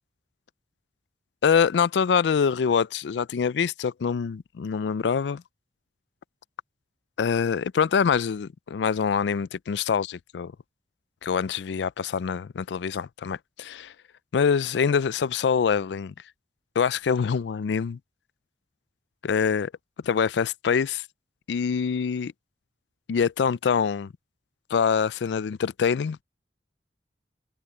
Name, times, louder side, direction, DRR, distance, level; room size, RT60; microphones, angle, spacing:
voice 1, 1.4-5.4 7.2-10.5 11.2-13.9 14.3-16.1 16.8-18.0 19.2-19.7 20.0-21.0 21.5-22.3 23.1-24.1 24.7-26.2, left 6 dB, 75° left, 0.4 m, -25 dB
head